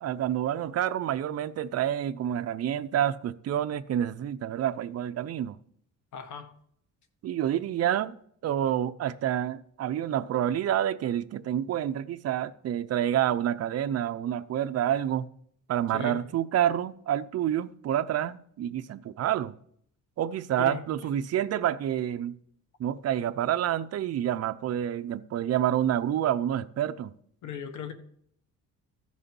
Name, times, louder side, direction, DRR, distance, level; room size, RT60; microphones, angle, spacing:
voice 1, 0.0-5.6 7.2-8.2 8.4-15.3 15.7-19.5 20.2-22.3 22.8-27.1, right 11 dB, 50° right, 0.6 m, -28 dB
voice 2, 6.1-6.5 15.9-16.2 20.6-20.8 27.4-27.9, left 7 dB, 65° left, 1.6 m, -37 dB
14.5 x 6.3 x 5.4 m
cardioid pair, 130°, 32 cm